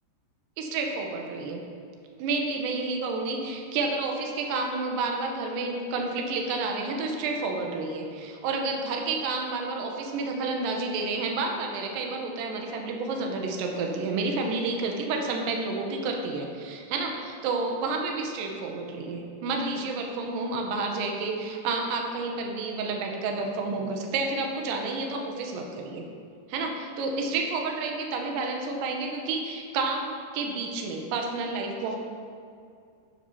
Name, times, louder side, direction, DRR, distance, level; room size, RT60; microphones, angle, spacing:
voice 1, 0.6-1.6 2.2-26.0 26.5-26.7 27.0-32.0, right 3 dB, 75° right, 2 dB, 2.3 m, -30 dB
13.5 x 6.6 x 2.8 m, 2.4 s
omnidirectional pair, 4.8 m